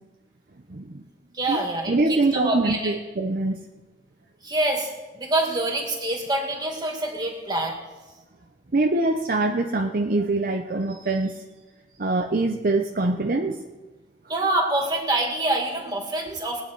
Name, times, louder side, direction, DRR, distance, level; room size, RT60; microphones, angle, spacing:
voice 1, 0.7-1.0 1.5-3.6 8.7-11.4 12.0-13.7, right 2 dB, 50° right, 4 dB, 0.6 m, -24 dB
voice 2, 1.3-3.0 4.4-4.9 5.2-7.8 14.3-16.6, right 2 dB, 25° right, 1 dB, 2.1 m, -26 dB
20.0 x 9.3 x 4.6 m, 1.2 s
head